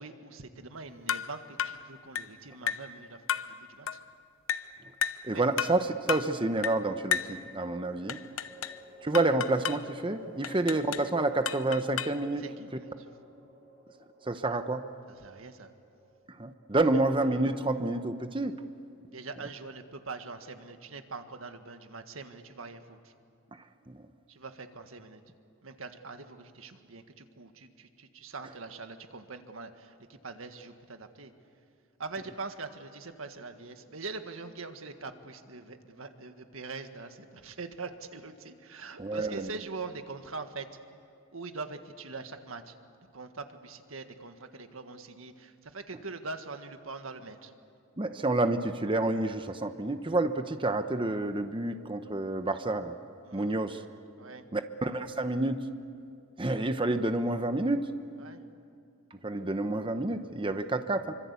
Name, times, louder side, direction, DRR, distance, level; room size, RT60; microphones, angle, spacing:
voice 1, 0.0-3.2 3.5-3.9 5.3-5.4 10.6-10.7 12.4-12.9 15.1-15.7 19.1-23.1 24.3-25.2 25.6-31.3 32.0-40.7 41.3-42.7 43.1-47.5 53.2-53.5 54.2-54.4 58.2-58.4, right 3 dB, 90° right, 7 dB, 1.7 m, -43 dB
sound 1, 1.1-1.3 1.6-1.8 2.2-2.3 2.7-2.9 3.3-3.5 3.9-4.0 4.5-4.7 5.0-5.3 5.6-5.8 6.1-6.3 6.6-6.8 7.1-7.4 8.1-8.8 9.1-9.8 10.4-11.1 11.5-12.2, left 8 dB, 80° left, 0.9 m, -33 dB
sound 2, 4.5-5.3 7.6-18.9, right 1 dB, 55° right, 6.6 m, -54 dB
voice 2, 5.2-5.8 6.1-8.2 9.0-12.4 14.2-14.8 16.4-18.5 23.5-24.0 39.0-39.5 48.0-52.9 53.3-53.8 54.5-55.6 56.4-57.9 59.1-61.1, right 2 dB, 25° right, 8 dB, 0.9 m, -29 dB
26.5 x 25.0 x 8.4 m, 2.4 s
head